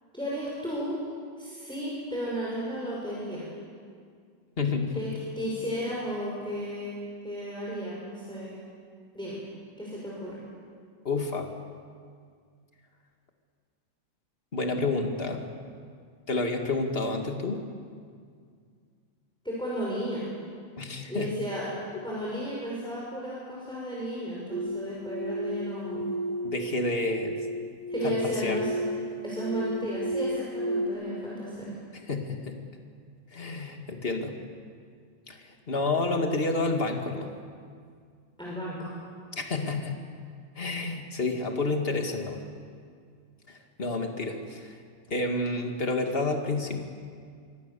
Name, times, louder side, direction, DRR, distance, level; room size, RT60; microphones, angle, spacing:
voice 1, 0.1-1.0 1.4-3.5 4.9-5.1 5.4-7.0 7.2-8.6 9.1-9.4 9.8-10.4 19.4-20.2 21.1-21.7 22.0-26.1 27.9-28.8 29.2-31.7 38.4-38.9, equal, 5° left, -6 dB, 5.7 m, -33 dB
voice 2, 4.6-5.0 11.0-11.5 14.5-15.4 16.3-17.6 20.8-21.3 21.9-22.0 26.4-27.4 28.0-28.6 32.1-32.6 33.3-34.4 35.3-37.3 39.3-40.0 40.6-42.4 43.5-44.8 45.1-46.8, left 3 dB, 45° left, 3 dB, 2.5 m, -29 dB
sound 1, 24.5-30.9, right 1 dB, 45° right, 2.2 m, -33 dB
25.5 x 24.0 x 7.0 m, 2.1 s
omnidirectional pair, 1.4 m